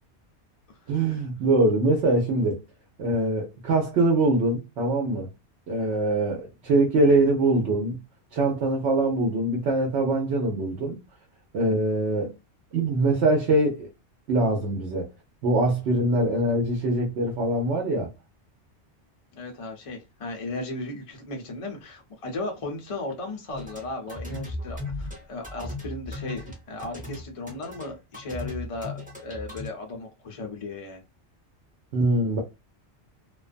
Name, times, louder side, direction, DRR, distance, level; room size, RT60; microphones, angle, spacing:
voice 1, 0.9-2.6 3.0-5.3 5.7-8.0 8.3-11.0 11.5-12.3 12.7-13.9 14.3-15.0 15.4-18.1 31.9-32.4, right 2 dB, 75° right, 0.9 m, -23 dB
voice 2, 19.3-31.0, left 2 dB, 45° left, 0.4 m, -36 dB
sound 1, 23.5-29.7, left 2 dB, 10° right, 0.9 m, -37 dB
2.3 x 2.2 x 2.4 m
omnidirectional pair, 1.2 m